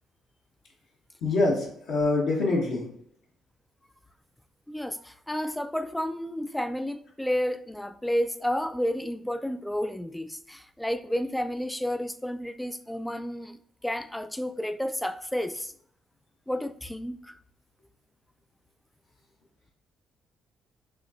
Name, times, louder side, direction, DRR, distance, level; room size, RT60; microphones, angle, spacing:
voice 1, 1.2-2.9, left 2 dB, 70° left, 1.0 m, -25 dB
voice 2, 4.7-13.6 13.8-15.7 16.5-17.3, equal, 5° left, 0.4 m, -31 dB
4.9 x 3.1 x 2.5 m
hypercardioid pair, 50°, 0 cm